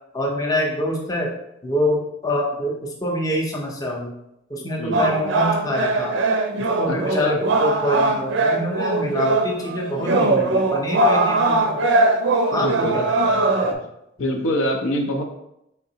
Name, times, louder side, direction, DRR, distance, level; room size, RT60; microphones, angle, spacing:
voice 1, 0.1-1.3 1.6-4.1 4.5-6.2 6.8-11.8 12.5-13.8 14.2-14.4, left 1 dB, 20° left, -1 dB, 0.5 m, -25 dB
sound 1, 4.9-13.7, right 2 dB, 65° right, 0.4 m, -21 dB
voice 2, 6.8-7.4 12.6-13.0 14.2-15.2, left 1 dB, 85° left, 2 dB, 0.6 m, -24 dB
3.8 x 3.3 x 2.7 m, 0.81 s
head